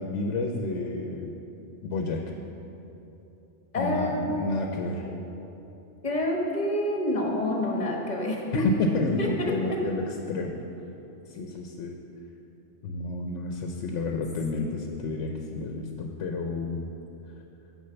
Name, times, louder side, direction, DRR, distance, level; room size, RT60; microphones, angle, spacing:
voice 1, 0.0-1.3 1.8-2.2 3.8-5.1 8.5-10.6 11.3-12.0 12.8-16.8, left 3 dB, 85° left, 2 dB, 0.9 m, -30 dB
voice 2, 3.7-4.5 5.0-5.1 6.0-8.6 9.2-9.3 9.6-9.8 14.5-14.8, left 1 dB, 40° left, 0 dB, 1.1 m, -28 dB
6.4 x 5.1 x 6.9 m, 3.0 s
omnidirectional pair, 1.2 m